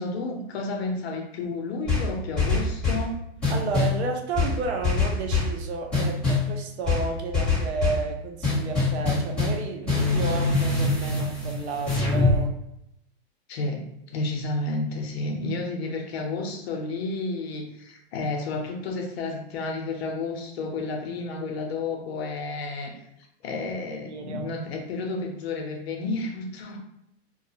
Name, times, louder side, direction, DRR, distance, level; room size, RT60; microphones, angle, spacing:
voice 1, 0.0-3.2 13.5-22.9 23.4-26.8, left 3 dB, 70° left, 2 dB, 0.7 m, -31 dB
sound 1, 1.9-3.1 3.4-4.0 4.3-5.6 5.9-6.5 6.8-8.0 8.4-9.6 9.9-12.4, left 3 dB, 5° left, 1.2 m, -24 dB
voice 2, 3.5-12.5 23.9-24.5, right 4 dB, 80° right, 3 dB, 0.7 m, -32 dB
2.3 x 2.3 x 2.8 m, 0.80 s
supercardioid pair, 150°, 33 cm